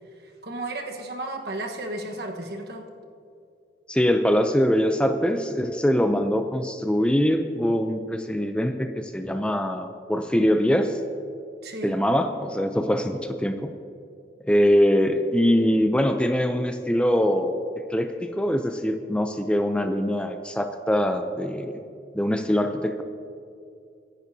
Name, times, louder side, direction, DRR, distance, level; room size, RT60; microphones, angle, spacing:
voice 1, 0.4-2.8 11.6-11.9, right 2 dB, 65° right, 2 dB, 1.3 m, -33 dB
voice 2, 3.9-11.0 11.8-13.7 14.5-17.6 17.9-21.8 22.1-23.0, equal, 5° left, 6 dB, 0.5 m, -23 dB
23.5 x 10.5 x 2.8 m, 2.5 s
head